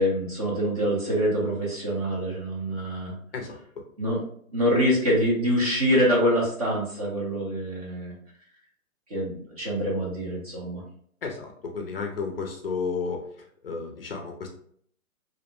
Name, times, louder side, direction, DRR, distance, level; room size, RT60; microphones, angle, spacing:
voice 1, 0.0-3.1 4.0-4.2 4.5-8.1 9.1-10.8, equal, 25° right, -4 dB, 0.6 m, -25 dB
voice 2, 3.3-3.8 11.2-13.2 13.6-14.5, left 4 dB, 45° left, 1 dB, 0.5 m, -32 dB
2.5 x 2.0 x 2.9 m, 0.62 s
hypercardioid pair, 155°, 42 cm